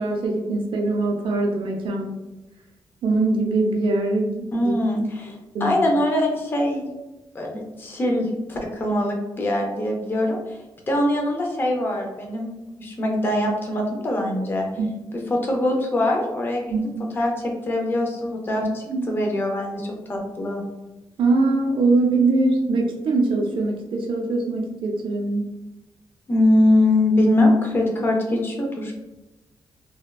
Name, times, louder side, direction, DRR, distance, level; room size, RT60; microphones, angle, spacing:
voice 1, 0.0-2.1 3.0-4.7 5.5-5.7 14.8-14.9 16.7-17.1 18.9-19.1 21.2-25.4, right 3 dB, 65° right, 1 dB, 0.5 m, -22 dB
voice 2, 4.5-5.3 5.6-6.9 7.3-10.6 10.9-12.5 12.8-14.7 15.1-16.7 17.1-20.6 26.3-28.9, left 1 dB, 25° left, 0 dB, 0.4 m, -22 dB
3.3 x 2.1 x 2.2 m, 1.0 s
wide cardioid pair, 150°, 9 cm